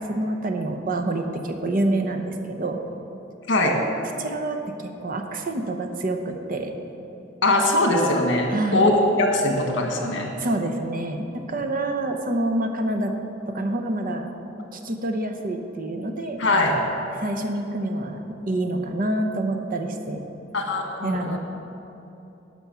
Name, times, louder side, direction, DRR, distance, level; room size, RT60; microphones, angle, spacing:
voice 1, 0.1-2.8 4.2-6.7 8.5-8.9 10.4-13.1 13.5-14.3 14.7-16.4 17.1-18.2 18.5-20.2 21.0-21.4, right 1 dB, 45° right, 4 dB, 0.9 m, -27 dB
voice 2, 7.4-10.3 16.4-16.8 20.5-21.4, left 1 dB, 65° left, 2 dB, 1.6 m, -21 dB
11.5 x 6.1 x 7.0 m, 2.9 s
head